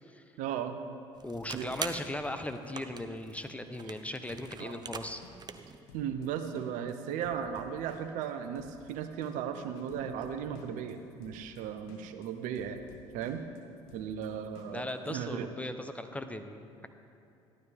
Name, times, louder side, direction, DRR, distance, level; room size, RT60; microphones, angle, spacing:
voice 1, 0.4-0.8 1.5-1.7 4.6-4.8 5.9-12.8 13.1-13.4 13.9-15.5, right 8 dB, 65° right, 8 dB, 0.9 m, -36 dB
sound 1, 1.1-5.8, right 5 dB, 30° right, 0.8 m, -44 dB
voice 2, 1.2-5.2 14.7-16.9, left 1 dB, 10° left, 8 dB, 0.8 m, -38 dB
sound 2, 5.1-14.9, left 4 dB, 75° left, 1.5 m, -54 dB
14.0 x 12.0 x 3.5 m, 2.8 s
hypercardioid pair, 65°, 14 cm